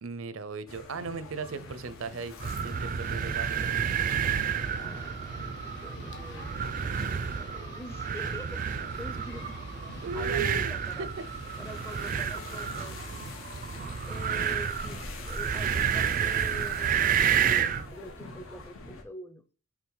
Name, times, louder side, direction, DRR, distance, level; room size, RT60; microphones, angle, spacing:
voice 1, 0.0-2.3 2.6-3.6 10.0-11.1, right 4 dB, 80° right, 0.6 m, -36 dB
sound 1, 0.7-19.0, left 2 dB, 90° left, 1.4 m, -44 dB
sound 2, 1.3-16.7, left 3 dB, 55° left, 1.8 m, -55 dB
sound 3, 2.4-17.9, right 8 dB, 40° right, 0.3 m, -30 dB
voice 2, 4.8-9.6 9.9-11.1 11.6-13.0 14.0-19.5, left 1 dB, 10° left, 0.5 m, -46 dB
5.8 x 3.8 x 4.7 m
head